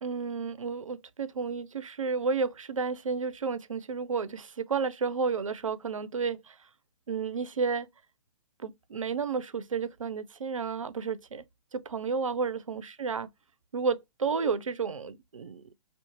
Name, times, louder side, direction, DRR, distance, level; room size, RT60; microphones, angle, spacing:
voice 1, 0.0-6.4 7.1-7.9 8.6-11.4 11.7-13.3 13.7-15.7, right 5 dB, 85° right, 0.4 m, -31 dB
2.5 x 2.4 x 3.8 m
figure-of-eight pair, 125°, 16 cm